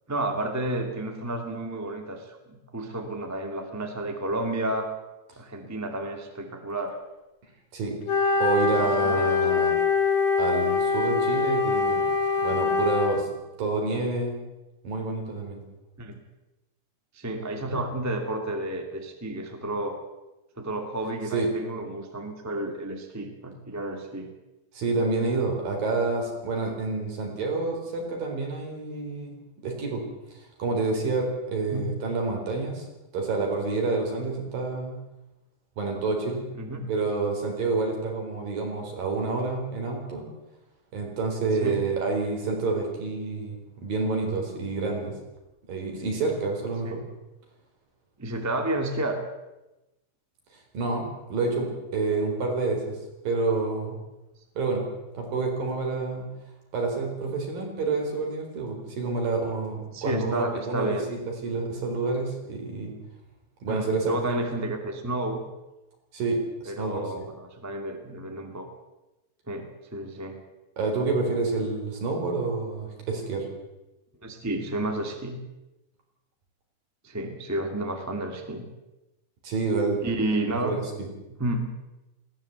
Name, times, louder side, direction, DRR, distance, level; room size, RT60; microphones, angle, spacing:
voice 1, 0.1-4.9 5.3-7.0 8.8-9.4 16.0-16.2 17.1-20.0 20.6-24.3 31.7-31.9 36.5-36.9 41.6-41.8 46.8-47.1 48.2-49.2 59.9-61.1 63.7-65.4 66.6-68.7 69.5-70.4 74.2-75.4 77.0-78.7 80.0-80.7 81.4-81.7, right 1 dB, 10° right, 4 dB, 1.0 m, -31 dB
Wind instrument woodwind instrument, 8.1-13.3, left 4 dB, 55° left, 3.4 m, -23 dB
voice 2, 8.4-9.8 10.4-12.1 12.4-13.3 13.6-14.4 14.8-15.6 21.3-21.5 24.7-29.4 29.6-30.0 30.6-32.9 33.1-34.9 35.8-36.4 36.9-40.3 40.9-45.1 45.7-47.0 50.7-51.0 51.3-52.9 53.2-54.0 54.6-54.9 55.1-56.3 56.7-62.9 63.6-64.5 66.1-67.3 70.8-73.5 79.4-80.0 80.6-80.8, right 3 dB, 55° right, 2 dB, 5.7 m, -28 dB
20.0 x 16.0 x 8.1 m, 1.0 s
omnidirectional pair, 4.9 m